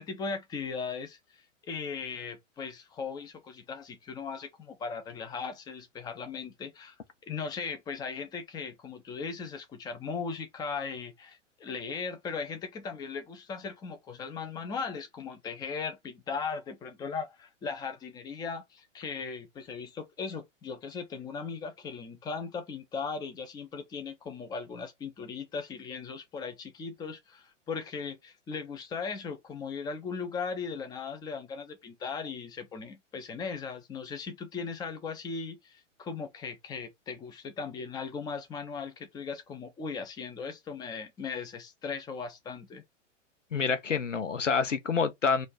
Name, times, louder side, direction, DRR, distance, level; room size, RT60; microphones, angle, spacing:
voice 1, 0.0-6.9 7.3-42.8, left 5 dB, 10° left, 0.7 m, -38 dB
voice 2, 43.5-45.5, left 5 dB, 75° left, 0.9 m, -27 dB
4.2 x 2.6 x 4.6 m
figure-of-eight pair, 100°, 37 cm